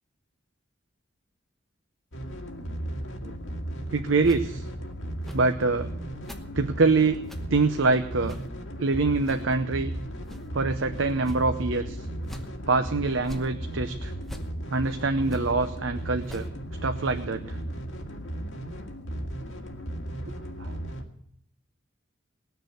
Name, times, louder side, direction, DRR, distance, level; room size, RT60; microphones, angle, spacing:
sound 1, 2.1-21.0, right 1 dB, 85° left, 1.9 m, -36 dB
voice 1, 3.9-4.7 5.3-5.9 6.5-7.2 7.5-8.3 8.8-9.9 10.5-12.1 12.7-14.1 14.7-16.4 16.8-17.6 20.6-20.8, right 3 dB, 80° right, 7 dB, 0.8 m, -25 dB
sound 2, 4.2-4.4 5.2-5.4 6.2-6.4 7.2-7.4 8.2-8.5 9.2-9.4 10.2-10.5 11.2-11.5 12.2-12.5 13.2-13.5 14.2-14.5 15.2-15.5 16.2-16.5, equal, ahead, 1.0 m, -43 dB
19.5 x 6.8 x 8.0 m, 0.72 s
head